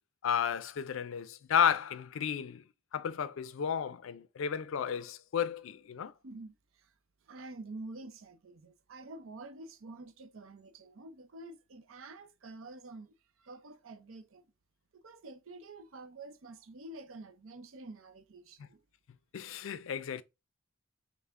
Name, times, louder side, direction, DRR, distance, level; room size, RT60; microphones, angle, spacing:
voice 1, 0.2-2.6 2.9-6.1 19.3-20.2, left 8 dB, 80° left, 0.4 m, -32 dB
voice 2, 6.2-6.5 6.8-6.9 7.3-14.4 14.9-18.8, right 2 dB, 85° right, 0.6 m, -48 dB
5.5 x 2.1 x 3.5 m
head